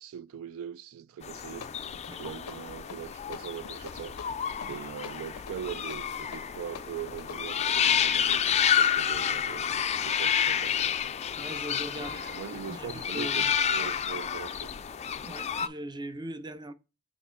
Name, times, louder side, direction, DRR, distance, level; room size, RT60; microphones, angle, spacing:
voice 1, 0.0-4.2 4.6-11.0 12.0-14.9, right 9 dB, 65° right, 0.3 m, -41 dB
sound 1, 1.2-15.7, left 8 dB, 30° left, 0.3 m, -30 dB
sound 2, 1.3-11.6, left 6 dB, 85° left, 0.5 m, -48 dB
voice 2, 11.4-13.9 15.2-16.7, right 1 dB, 20° right, 0.5 m, -41 dB
6.5 x 3.0 x 5.5 m
head